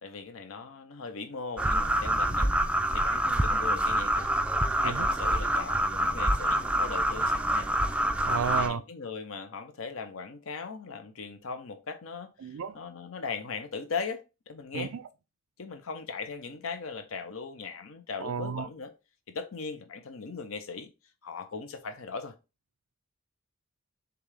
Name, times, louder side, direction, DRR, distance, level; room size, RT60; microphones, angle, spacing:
voice 1, 0.0-2.5 2.9-4.3 4.8-7.7 8.4-14.9 15.6-18.9 19.3-20.9 21.2-22.3, left 4 dB, 75° left, 0.7 m, -39 dB
sound 1, 1.6-8.7, right 1 dB, 5° right, 0.3 m, -26 dB
voice 2, 8.2-8.8 12.4-12.8 14.7-15.0 18.2-18.7, right 6 dB, 80° right, 0.4 m, -32 dB
6.8 x 2.4 x 3.3 m
head